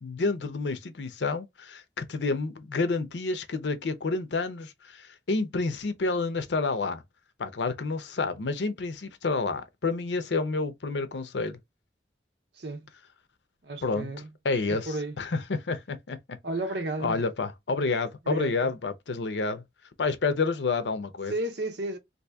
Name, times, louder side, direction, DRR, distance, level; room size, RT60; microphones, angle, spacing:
voice 1, 0.0-7.0 7.4-11.6 13.8-14.1 14.4-16.2 17.0-19.6 20.0-21.3, left 3 dB, 80° left, 0.6 m, -29 dB
voice 2, 12.6-12.9 13.6-14.3 14.7-15.1 16.4-17.2 18.3-18.7 21.3-22.0, right 2 dB, 70° right, 0.8 m, -33 dB
2.8 x 2.7 x 3.4 m
head